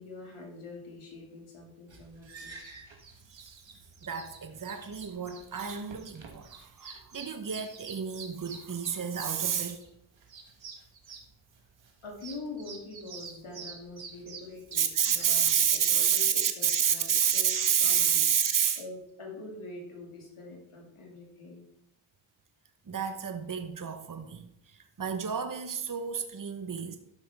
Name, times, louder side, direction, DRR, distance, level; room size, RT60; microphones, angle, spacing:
voice 1, 0.0-2.6 12.0-18.2 18.8-21.7, left 2 dB, 75° left, 2.5 m, -44 dB
sound 1, 1.9-15.8, right 5 dB, 65° right, 1.7 m, -48 dB
voice 2, 4.0-9.8 14.8-18.8 22.9-24.5 25.0-27.0, right 8 dB, 40° right, 1.1 m, -29 dB
12.5 x 6.0 x 3.5 m
cardioid pair, 45°, 50 cm